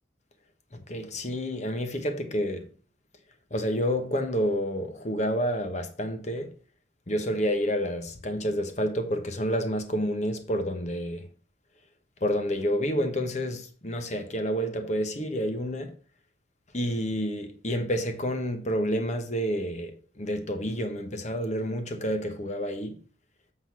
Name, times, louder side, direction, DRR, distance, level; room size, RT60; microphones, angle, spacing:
voice 1, 0.7-2.7 3.5-6.5 7.1-11.3 12.2-15.9 16.7-23.0, equal, 35° left, 1.1 m, -29 dB
8.1 x 3.9 x 6.0 m
head